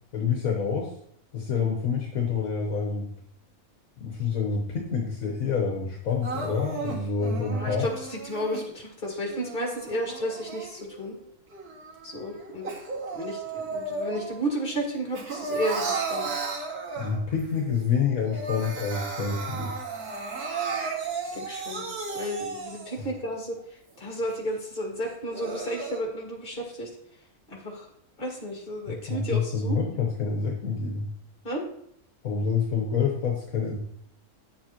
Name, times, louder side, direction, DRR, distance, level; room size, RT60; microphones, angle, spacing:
voice 1, 0.1-0.9 1.3-3.1 4.0-7.9 17.0-19.8 23.0-23.1 28.9-31.1 32.2-33.8, left 5 dB, 70° left, 0 dB, 1.4 m, -27 dB
Crying sobbing, 6.2-8.6 9.3-11.1 11.5-14.4 14.7-17.4 17.8-17.9 18.2-23.1 23.6-23.7 24.2-24.3 25.1-26.0, right 4 dB, 90° right, 2.1 m, -34 dB
voice 2, 7.5-11.2 12.0-12.7 13.1-16.4 21.3-21.9 22.1-26.9 27.5-27.9 28.2-29.8 31.4-31.6, equal, 35° left, -1 dB, 2.2 m, -32 dB
9.3 x 7.2 x 2.9 m, 0.69 s
omnidirectional pair, 1.5 m